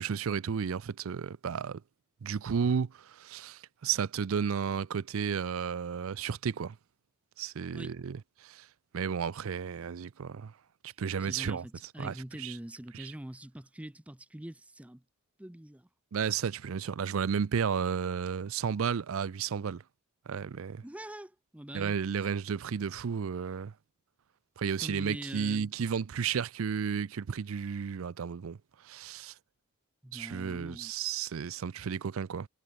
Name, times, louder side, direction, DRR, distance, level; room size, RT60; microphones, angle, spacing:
voice 1, 0.0-1.8 2.2-2.9 3.2-6.8 7.4-8.6 8.9-10.5 11.0-11.6 12.0-12.6 12.9-13.1 16.1-19.8 20.3-20.8 21.7-23.7 24.6-28.6 28.9-29.3 30.1-32.5, right 6 dB, 75° right, 0.5 m, -33 dB
voice 2, 11.2-15.0 15.4-15.9 20.8-21.9 24.8-25.7 30.0-30.9, right 1 dB, 5° right, 0.5 m, -43 dB
head